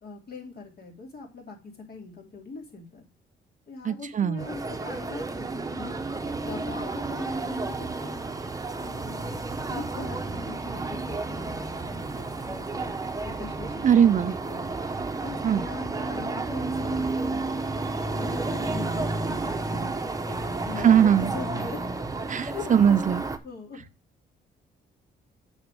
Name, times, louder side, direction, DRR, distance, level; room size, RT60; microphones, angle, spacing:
voice 1, 0.0-3.0 3.7-6.0 6.4-8.2 8.7-9.3 9.6-12.9 13.2-14.7 15.2-17.6 18.1-20.9 21.2-21.8 22.5-22.7 23.4-23.9, left 3 dB, 55° left, 3.2 m, -41 dB
voice 2, 3.8-4.4 13.8-14.3 15.4-15.7 20.8-21.3 22.3-23.2, right 8 dB, 40° right, 0.5 m, -20 dB
sound 1, 4.4-23.4, right 3 dB, 15° right, 0.9 m, -31 dB
7.9 x 4.4 x 7.0 m
cardioid pair, 90°, 20 cm